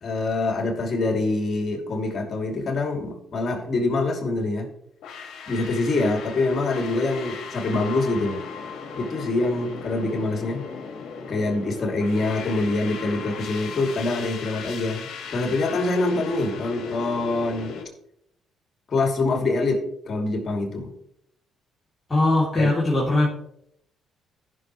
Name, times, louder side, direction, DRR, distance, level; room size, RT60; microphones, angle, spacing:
voice 1, 0.0-4.7 5.5-8.4 9.0-10.7 11.3-17.7 18.9-20.9 22.5-22.7, left 2 dB, 50° left, 2 dB, 2.7 m, -25 dB
sound 1, 5.0-17.8, left 6 dB, 70° left, 1.7 m, -37 dB
voice 2, 22.1-23.4, left 2 dB, 25° left, -6 dB, 2.9 m, -21 dB
15.0 x 6.3 x 3.1 m, 0.72 s
supercardioid pair, 65°, 0 cm